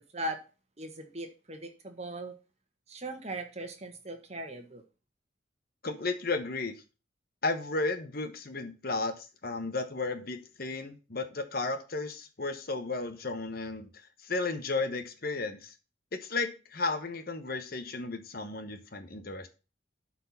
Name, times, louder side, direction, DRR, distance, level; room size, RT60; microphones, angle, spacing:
voice 1, 0.8-2.3 2.9-4.8, right 1 dB, 35° right, 5 dB, 1.6 m, -39 dB
voice 2, 5.8-6.7 7.4-13.9 14.2-15.7 16.2-19.5, left 3 dB, 50° left, 8 dB, 1.2 m, -34 dB
12.0 x 4.6 x 5.7 m, 0.32 s
head